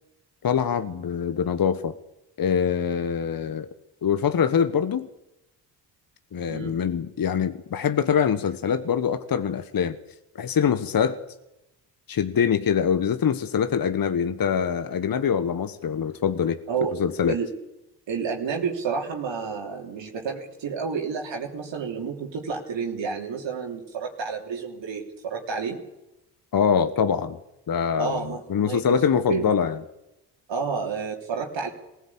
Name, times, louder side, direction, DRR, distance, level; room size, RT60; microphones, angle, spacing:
voice 1, 0.4-1.9 2.4-3.7 4.0-5.1 6.3-10.0 10.3-11.2 12.1-16.6 17.0-17.4 26.5-27.4 27.7-29.8, left 7 dB, 45° left, 11 dB, 1.3 m, -24 dB
voice 2, 6.5-6.8 16.7-16.9 17.3-17.5 18.1-25.8 28.0-29.0 29.3-29.5 30.5-31.7, right 5 dB, 60° right, 0 dB, 3.4 m, -30 dB
21.0 x 15.5 x 8.6 m, 0.91 s
hypercardioid pair, 45°, 49 cm